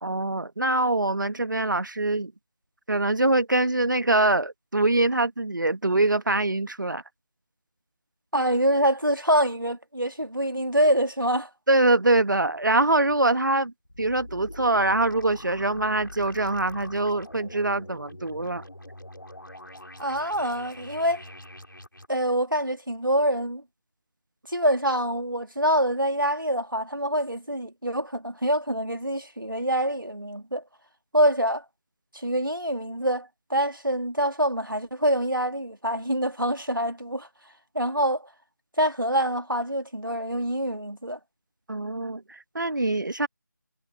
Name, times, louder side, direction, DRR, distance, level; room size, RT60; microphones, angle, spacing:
voice 1, 0.0-2.3 2.9-7.0 11.7-13.7 14.0-18.6 41.7-43.3, right 2 dB, 70° right, 1.4 m, -24 dB
voice 2, 8.3-11.5 20.0-21.2 22.1-23.6 24.5-30.6 31.1-31.6 32.1-37.3 37.7-38.3 38.8-41.2, equal, 90° right, 2.7 m, -25 dB
sound 1, 13.8-22.1, left 1 dB, 80° left, 3.9 m, -44 dB
figure-of-eight pair, 160°, 11 cm